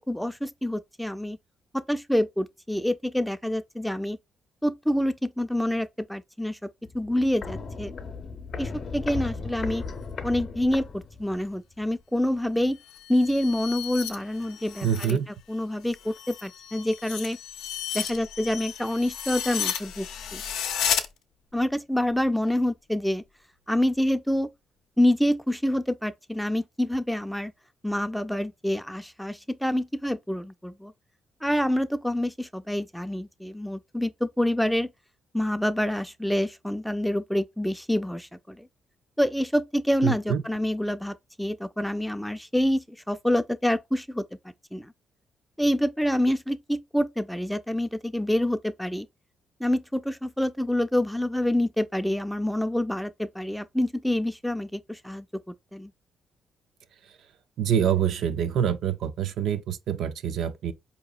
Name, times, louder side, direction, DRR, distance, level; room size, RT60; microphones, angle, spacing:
voice 1, 0.1-1.4 1.7-4.2 4.6-6.6 6.9-7.9 8.6-9.8 10.2-12.8 13.1-15.2 15.5-17.4 17.9-20.1 20.3-20.4 21.5-23.2 23.7-24.5 25.0-27.5 27.8-30.9 31.4-34.9 35.3-38.7 39.2-44.2 44.7-44.9 45.6-49.1 49.6-55.2 55.7-55.9, left 1 dB, ahead, 0.3 m, -27 dB
Walk footsteps, 6.8-11.5 11.8-11.9, left 4 dB, 55° left, 0.7 m, -36 dB
sound 1, 12.8-15.2 15.5-21.1, left 9 dB, 90° left, 0.5 m, -33 dB
voice 2, 14.8-15.3 40.0-40.4 57.6-60.7, right 8 dB, 70° right, 0.4 m, -26 dB
4.6 x 2.8 x 2.3 m
cardioid pair, 90°, 0 cm